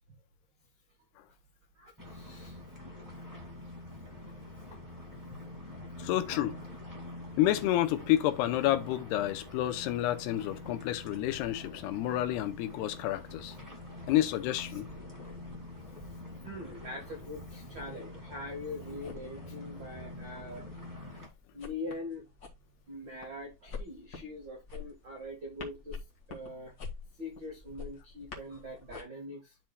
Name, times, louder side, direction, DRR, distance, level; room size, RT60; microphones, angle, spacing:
voice 1, 1.7-2.6 2.9-3.3 3.8-7.2 14.7-14.8 16.1-20.6 21.5-22.3 22.9-26.0 26.3-26.8 27.2-29.6, left 2 dB, 80° right, 1.0 m, -44 dB
sound 1, 2.0-21.3, left 2 dB, 15° right, 0.6 m, -46 dB
voice 2, 6.0-6.6 7.4-13.6 14.1-14.9, left 13 dB, 85° left, 2.7 m, -29 dB
sound 2, 11.4-29.0, left 4 dB, 60° left, 0.9 m, -49 dB
12.0 x 4.4 x 2.2 m
omnidirectional pair, 4.7 m